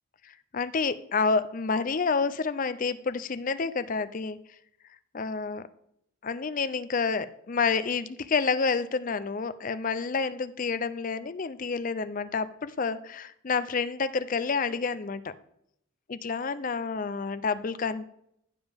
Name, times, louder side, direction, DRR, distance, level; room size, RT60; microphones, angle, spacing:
voice 1, 0.2-4.4 5.1-5.6 6.2-15.3 16.1-18.0, left 4 dB, 40° left, 14 dB, 0.4 m, -29 dB
15.0 x 7.1 x 3.5 m, 0.74 s
head